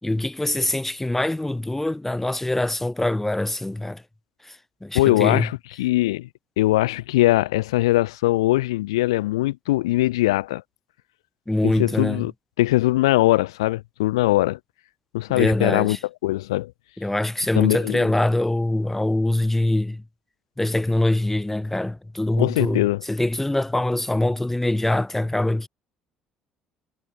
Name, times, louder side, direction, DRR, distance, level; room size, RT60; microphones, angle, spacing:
voice 1, 0.0-4.0 4.4-5.5 11.5-12.3 15.3-16.0 17.0-20.0 20.6-25.7, left 1 dB, 10° left, 5.5 m, -24 dB
voice 2, 4.9-6.3 6.6-10.6 11.6-12.3 12.6-14.6 15.1-16.0 16.2-16.7 17.5-18.1 22.4-23.0, left 17 dB, 85° left, 3.1 m, -21 dB
hypercardioid pair, 60°, 3 cm